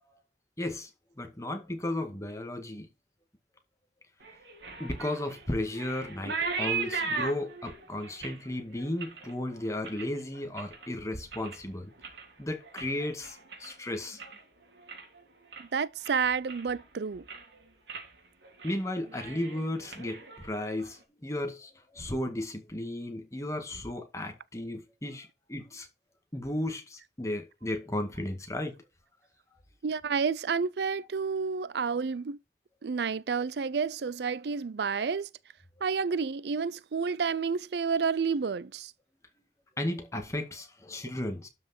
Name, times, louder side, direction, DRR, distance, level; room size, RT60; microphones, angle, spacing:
voice 1, 0.6-0.9 1.2-2.9 4.8-11.9 12.4-14.2 18.6-25.9 26.3-28.8 39.8-41.5, left 1 dB, 15° left, 1.9 m, -34 dB
sound 1, 4.2-10.9 11.2-11.7 12.0-14.4 14.7-15.2 15.5-15.6 16.0-16.8 17.1-17.5 17.9-18.1 18.4-18.8 19.0-20.9, right 4 dB, 85° right, 3.5 m, -38 dB
voice 2, 15.6-17.2 29.8-32.4 32.8-35.3 35.8-38.9, right 5 dB, 65° right, 0.5 m, -30 dB
12.0 x 6.0 x 4.4 m
head